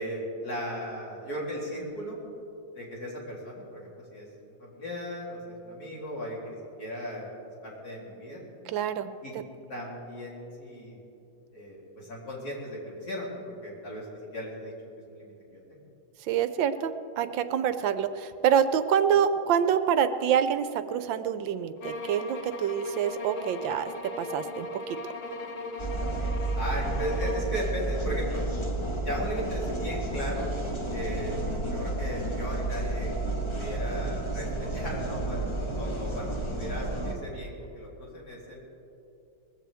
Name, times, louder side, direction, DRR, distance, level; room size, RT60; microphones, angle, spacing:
voice 1, 0.0-2.2 2.7-4.3 4.6-7.3 7.6-8.4 9.2-9.3 9.7-11.0 11.5-14.1 14.3-14.7 15.1-15.8 26.5-28.4 29.0-30.5 30.9-31.4 31.7-38.6, equal, 50° left, -5 dB, 3.8 m, -36 dB
voice 2, 8.7-9.1 16.3-23.9 24.2-25.0, right 8 dB, 75° right, 11 dB, 1.3 m, -26 dB
sound 1, 21.8-27.6, left 2 dB, 75° left, 1.9 m, -38 dB
sound 2, 25.8-37.1, right 2 dB, 20° left, 0.8 m, -31 dB
20.5 x 15.0 x 3.5 m, 2.7 s
omnidirectional pair, 2.2 m